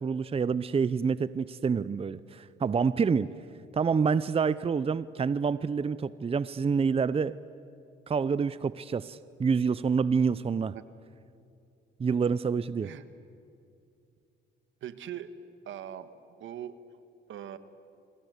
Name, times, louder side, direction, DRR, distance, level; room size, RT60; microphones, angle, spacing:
voice 1, 0.0-3.3 3.7-7.3 8.1-10.7 12.0-12.9, right 5 dB, 30° right, 17 dB, 0.6 m, -27 dB
voice 2, 14.8-15.3 15.6-16.1 16.4-16.8 17.3-17.6, right 10 dB, 75° right, 12 dB, 1.6 m, -40 dB
28.5 x 24.5 x 8.1 m, 2.5 s
cardioid pair, 90°, 20 cm